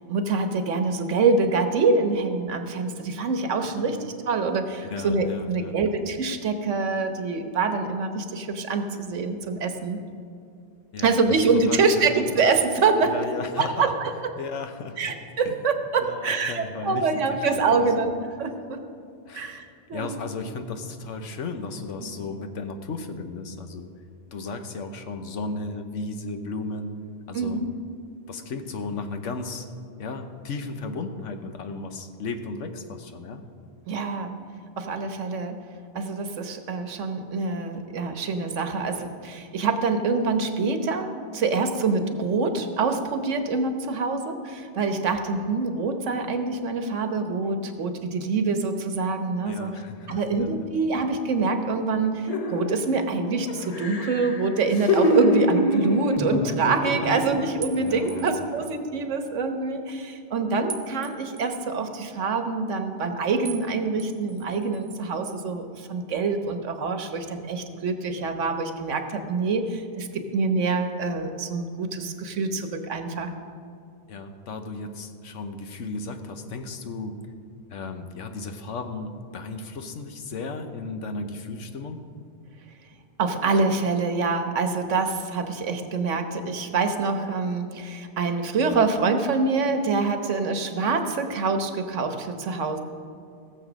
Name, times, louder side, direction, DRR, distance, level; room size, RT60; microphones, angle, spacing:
voice 1, 0.1-4.0 4.3-10.0 11.0-13.3 13.6-14.1 15.0-18.8 19.3-20.2 22.0-22.1 27.3-27.7 33.9-34.4 34.8-35.5 35.9-49.7 50.1-73.3 83.2-92.8, right 4 dB, 85° right, 7 dB, 1.4 m, -25 dB
voice 2, 3.6-4.0 4.8-5.8 10.9-12.4 13.0-14.0 14.4-15.1 15.4-15.6 16.0-17.9 19.3-19.5 19.9-23.9 24.3-27.0 27.3-27.6 28.3-29.7 30.0-33.4 49.4-50.7 57.0-57.5 57.8-58.6 74.1-77.3 77.7-82.0, left 3 dB, 90° left, 7 dB, 1.3 m, -35 dB
sound 1, 52.3-53.1 53.5-57.6 58.0-58.2, left 1 dB, 40° left, 0.7 m, -25 dB
sound 2, 57.6-58.6 60.7-61.7 63.4-63.7 64.0-64.9, right 8 dB, 65° right, 1.1 m, -40 dB
17.0 x 7.3 x 6.1 m, 2.5 s
omnidirectional pair, 1.2 m